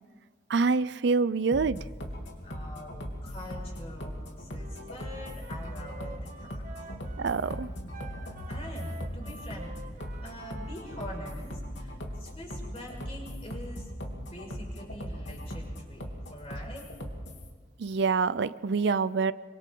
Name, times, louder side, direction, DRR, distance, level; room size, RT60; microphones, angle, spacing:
voice 1, 0.5-1.8 7.2-7.7 17.8-19.3, right 4 dB, 70° right, 16 dB, 0.5 m, -26 dB
sound 1, 1.5-17.5, equal, 80° left, 3.0 m, -39 dB
voice 2, 2.4-6.9 7.8-13.9 14.2-16.0 16.3-16.9, equal, 35° left, -1 dB, 5.9 m, -45 dB
Wind instrument woodwind instrument, 4.6-11.4, right 2 dB, 45° right, 1.5 m, -49 dB
27.0 x 25.0 x 3.9 m, 1.6 s
head